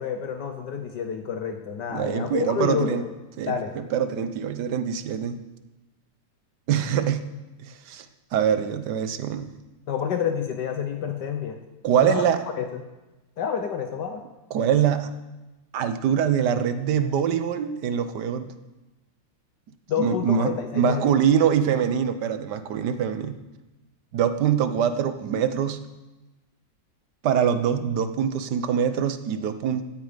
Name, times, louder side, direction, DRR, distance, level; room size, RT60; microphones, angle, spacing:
voice 1, 0.0-3.0 3.5-3.8 9.9-11.6 12.0-12.3 12.6-12.8 13.4-14.2 19.9-21.1, left 7 dB, 70° left, 5 dB, 1.6 m, -28 dB
voice 2, 1.9-3.0 3.4-5.4 6.7-7.2 7.6-8.1 8.3-9.5 11.8-12.4 14.5-15.1 15.7-18.5 20.0-23.4 24.1-25.8 27.2-29.9, right 8 dB, 65° right, 10 dB, 1.5 m, -24 dB
17.0 x 12.0 x 5.2 m, 1.1 s
omnidirectional pair, 2.0 m